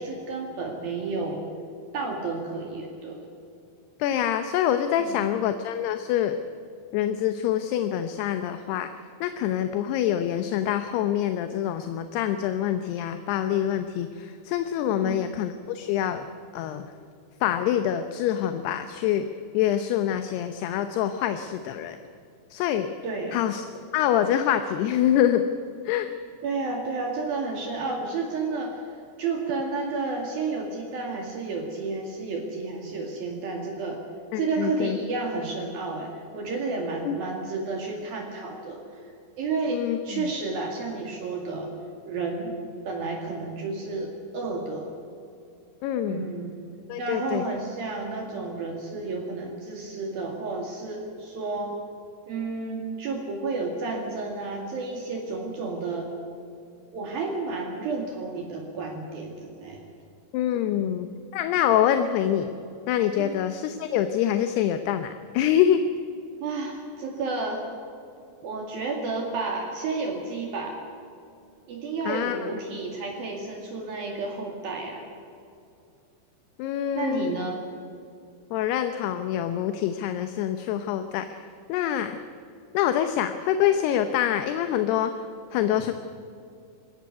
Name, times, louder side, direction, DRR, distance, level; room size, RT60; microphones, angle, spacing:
voice 1, 0.0-1.4 1.9-3.2 5.0-5.3 14.9-15.2 23.0-23.4 26.4-34.0 34.3-39.1 39.4-41.7 42.1-42.6 42.9-44.9 46.1-46.6 47.0-51.8 52.3-56.1 56.9-59.8 60.6-60.9 63.2-63.4 66.4-67.6 68.4-70.8 71.7-75.1 77.0-77.6, right 3 dB, 60° right, 1 dB, 3.8 m, -31 dB
voice 2, 4.0-6.4 6.9-8.9 9.2-16.3 16.5-16.9 17.4-19.3 19.5-22.0 22.5-22.9 23.3-25.5 25.8-26.1 34.3-35.0 37.1-37.2 39.7-40.3 45.8-46.3 46.9-47.4 60.3-62.5 62.9-65.8 72.1-72.4 76.6-77.3 78.5-82.2 82.7-85.2 85.5-85.9, left 10 dB, 75° left, 8 dB, 2.9 m, -25 dB
21.5 x 17.0 x 9.5 m, 2.6 s
omnidirectional pair, 5.0 m